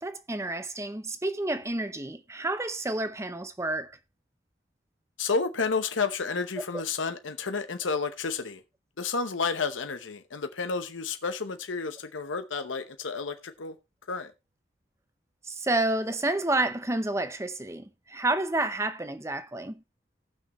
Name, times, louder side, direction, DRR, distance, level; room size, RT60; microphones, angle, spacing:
voice 1, 0.0-3.9 6.7-6.8 15.4-19.8, right 2 dB, 15° right, 0.7 m, -30 dB
voice 2, 5.2-8.6 9.0-13.8 14.1-14.3, left 4 dB, 90° left, 0.9 m, -31 dB
18.5 x 6.2 x 3.0 m
head